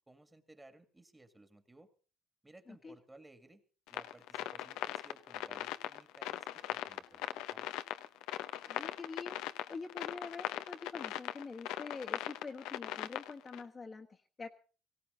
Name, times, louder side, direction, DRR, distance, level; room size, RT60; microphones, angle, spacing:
voice 1, 0.1-1.9 2.4-3.6 3.9-7.7, right 2 dB, 10° right, 10 dB, 2.2 m, -59 dB
sound 1, 3.9-13.6, left 14 dB, 85° left, 0.8 m, -40 dB
voice 2, 8.7-14.5, left 4 dB, 25° left, 3 dB, 1.3 m, -46 dB
18.0 x 17.0 x 4.0 m, 0.37 s
cardioid pair, 105°, 0 cm